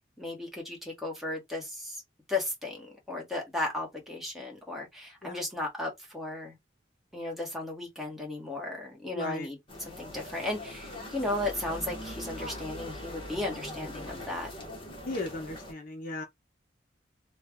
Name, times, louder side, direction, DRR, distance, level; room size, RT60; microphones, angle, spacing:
voice 1, 0.2-2.0 2.3-6.5 7.1-9.6 9.8-14.5, left 2 dB, ahead, 1.2 m, -35 dB
voice 2, 9.1-9.5 15.1-16.2, left 2 dB, 45° left, 0.6 m, -36 dB
sound 1, 9.7-15.7, left 1 dB, 25° left, 1.0 m, -41 dB
3.2 x 2.2 x 3.5 m
head